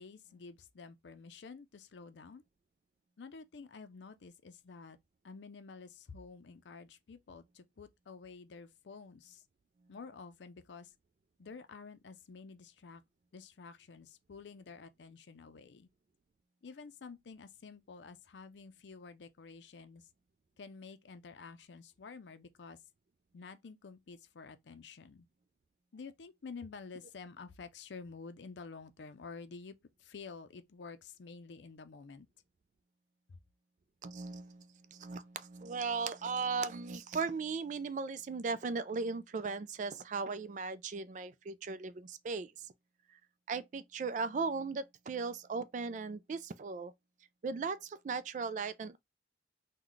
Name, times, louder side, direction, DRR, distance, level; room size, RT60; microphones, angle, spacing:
voice 1, 0.0-2.4 3.2-5.0 5.2-9.4 9.9-10.9 11.4-13.0 13.3-15.9 16.6-20.1 20.6-22.8 23.3-25.3 25.9-32.3 33.3-33.4, left 4 dB, 85° left, 0.5 m, -50 dB
voice 2, 34.0-42.5 43.5-46.9 47.4-49.0, right 4 dB, 45° right, 0.3 m, -37 dB
3.9 x 2.2 x 3.1 m
head